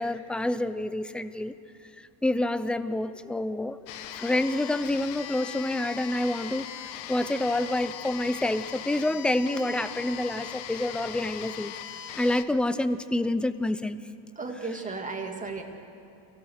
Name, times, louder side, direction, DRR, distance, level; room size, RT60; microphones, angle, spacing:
voice 1, 0.0-1.5 2.2-3.8 4.2-6.7 7.1-11.7 12.2-14.0, left 1 dB, ahead, 13 dB, 0.5 m, -27 dB
sound 1, 3.9-12.4, left 10 dB, 80° left, 1.2 m, -40 dB
voice 2, 14.4-15.6, right 4 dB, 15° right, 2 dB, 2.3 m, -34 dB
25.0 x 17.0 x 6.6 m, 2.7 s
cardioid pair, 125°, 45 cm